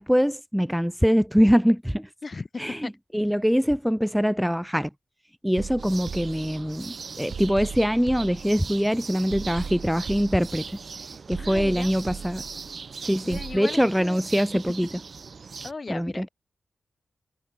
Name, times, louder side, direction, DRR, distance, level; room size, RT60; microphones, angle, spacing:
voice 1, 0.0-2.1 2.6-4.9 5.4-10.6 11.3-12.4 13.0-14.9 15.9-16.3, equal, ahead, 0.6 m, -23 dB
voice 2, 2.2-2.9 11.4-11.9 13.2-14.2 15.6-16.3, left 3 dB, 40° left, 3.0 m, -36 dB
sound 1, 5.6-6.9 7.3-8.9 9.3-10.9 11.3-12.9 13.3-13.6, right 6 dB, 80° right, 3.4 m, -38 dB
sound 2, 5.8-15.7, right 5 dB, 60° right, 1.0 m, -40 dB
wide cardioid pair, 85°, 0 cm